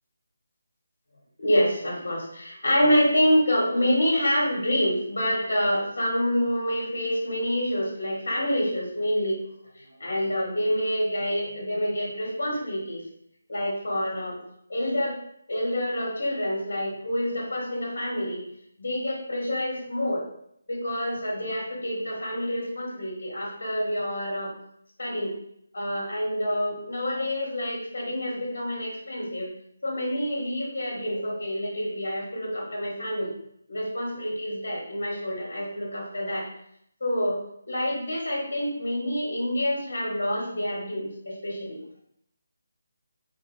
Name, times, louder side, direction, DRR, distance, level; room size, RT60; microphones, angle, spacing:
voice 1, 1.4-9.4 9.7-13.0 13.5-14.4 14.7-15.2 15.5-18.4 18.8-20.2 20.7-24.5 25.0-25.3 25.7-29.5 29.8-33.3 33.7-36.5 37.0-37.4 37.7-41.8, equal, 70° left, -2 dB, 1.6 m, -27 dB
4.9 x 2.4 x 3.3 m, 0.70 s
figure-of-eight pair, 170°, 0 cm